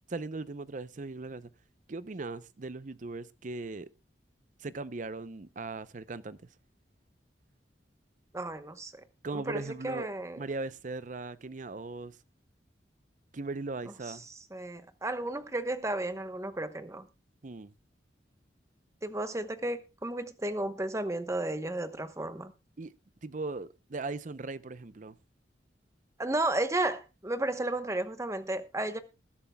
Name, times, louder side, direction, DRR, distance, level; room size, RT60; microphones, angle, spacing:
voice 1, 0.1-1.5 1.9-3.9 4.6-6.4 9.2-10.1 10.4-12.2 13.3-14.3 17.4-17.7 22.8-22.9 23.2-25.2, right 3 dB, 45° right, 0.6 m, -38 dB
voice 2, 8.3-9.0 9.3-10.4 14.5-17.1 19.0-22.5 26.2-29.0, right 2 dB, 15° right, 1.0 m, -33 dB
20.0 x 11.5 x 2.3 m
head